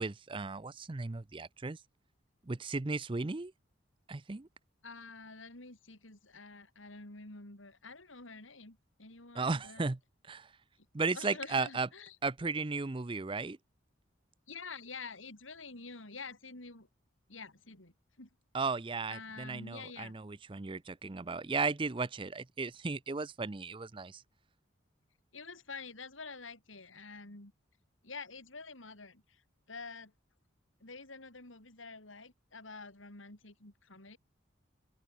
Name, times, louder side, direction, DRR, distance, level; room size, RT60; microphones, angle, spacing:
voice 1, 0.0-1.8 2.5-3.5 4.1-4.5 9.3-10.0 10.2-10.5 10.9-11.9 12.2-13.6 18.5-24.2, right 4 dB, 25° right, 0.5 m, -35 dB
voice 2, 4.8-9.9 10.8-10.9 11.1-12.2 14.5-16.9 17.3-18.3 19.1-20.2 25.3-27.5 28.0-29.4 29.7-30.1 30.8-34.2, left 4 dB, 85° left, 4.5 m, -48 dB
open air
head